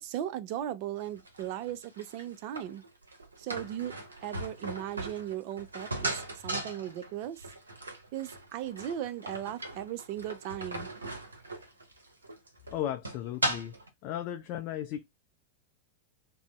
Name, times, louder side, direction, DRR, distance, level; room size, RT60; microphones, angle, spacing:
voice 1, 0.0-2.8 3.4-7.4 8.1-10.9, right 11 dB, 45° right, 0.3 m, -37 dB
sound 1, 1.0-13.9, right 2 dB, 75° right, 0.7 m, -38 dB
voice 2, 12.7-13.8 14.0-15.0, left 11 dB, 40° left, 0.3 m, -35 dB
2.5 x 2.0 x 3.1 m
figure-of-eight pair, 90°, 0 cm